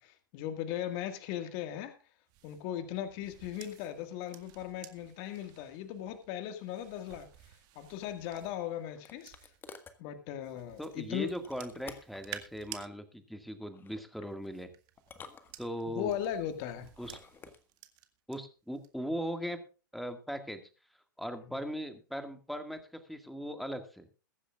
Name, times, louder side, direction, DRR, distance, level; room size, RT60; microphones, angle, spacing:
voice 1, 0.0-2.0 2.4-7.3 7.8-9.5 10.0-11.3 15.9-16.9, left 10 dB, 45° left, 1.8 m, -38 dB
sound 1, 2.3-9.8 10.4-12.9 14.1-18.4 18.7-19.1, right 14 dB, 40° right, 2.0 m, -53 dB
sound 2, 8.2-10.0 11.4-12.3 13.6-14.1 15.0-16.0 16.9-17.6, left 5 dB, 20° left, 1.6 m, -52 dB
voice 2, 10.8-14.7 15.6-16.1 17.0-17.2 18.3-19.6 19.9-20.6 21.2-24.1, equal, ahead, 1.9 m, -39 dB
22.0 x 10.0 x 2.4 m
hypercardioid pair, 115°, 11 cm